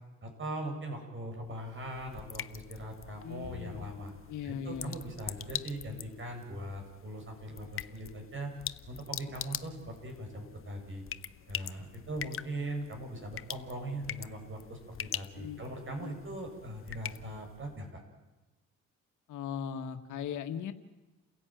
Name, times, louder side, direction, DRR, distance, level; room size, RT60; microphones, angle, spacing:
voice 1, 0.2-4.1 4.4-8.5 8.9-11.0 11.5-18.0, right 1 dB, 40° right, 3 dB, 7.9 m, -40 dB
sound 1, 1.4-17.8, left 9 dB, 45° left, 0.9 m, -44 dB
voice 2, 3.2-3.8 4.3-5.0 15.4-15.6 15.9-16.2 19.3-20.7, left 8 dB, 80° left, 8 dB, 1.8 m, -39 dB
29.5 x 16.5 x 9.3 m, 1.1 s
cardioid pair, 90°, 30 cm